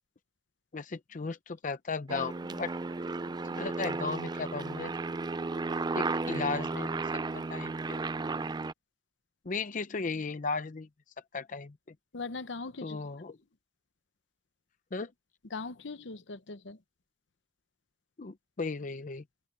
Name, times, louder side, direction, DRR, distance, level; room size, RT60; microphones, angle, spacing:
voice 1, 0.7-2.7 3.6-4.9 5.9-8.0 9.5-10.9 11.3-11.7 12.8-13.4 14.9-15.1 18.2-19.2, left 4 dB, 45° left, 0.6 m, -36 dB
Aircraft, 2.1-8.7, right 3 dB, 25° right, 0.4 m, -34 dB
voice 2, 12.1-13.2 15.5-16.8, left 3 dB, 80° left, 0.9 m, -40 dB
open air
head